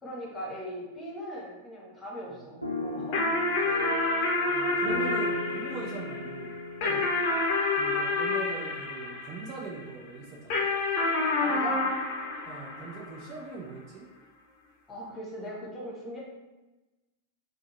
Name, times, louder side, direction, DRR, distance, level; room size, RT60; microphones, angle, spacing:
voice 1, 0.0-3.2 6.8-7.1 11.4-11.8 14.9-16.2, equal, 15° left, -4 dB, 1.1 m, -39 dB
sound 1, 2.6-8.6, left 2 dB, 90° left, 0.3 m, -37 dB
sound 2, 3.1-9.8 10.5-13.3, left 3 dB, 45° left, 0.6 m, -29 dB
voice 2, 4.5-6.6 6.8-7.0 7.7-10.7 12.4-14.1, right 4 dB, 35° right, -2 dB, 0.5 m, -41 dB
3.6 x 2.1 x 3.0 m, 1.1 s
figure-of-eight pair, 90°, 0 cm